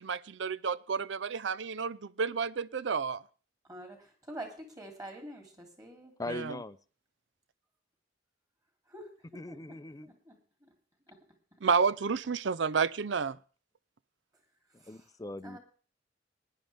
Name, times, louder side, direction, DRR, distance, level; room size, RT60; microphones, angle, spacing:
voice 1, 0.0-3.2 6.3-6.6 11.6-13.4, right 5 dB, 70° right, 0.5 m, -30 dB
voice 2, 3.7-6.1 8.9-9.1 9.5-9.6 10.0-10.3 10.6-10.7 11.1-11.2 14.8-15.1 15.4-15.6, right 1 dB, 20° right, 3.1 m, -46 dB
voice 3, 6.2-6.8 9.3-10.1 14.7-15.6, left 2 dB, 20° left, 0.5 m, -40 dB
19.5 x 10.5 x 3.5 m
head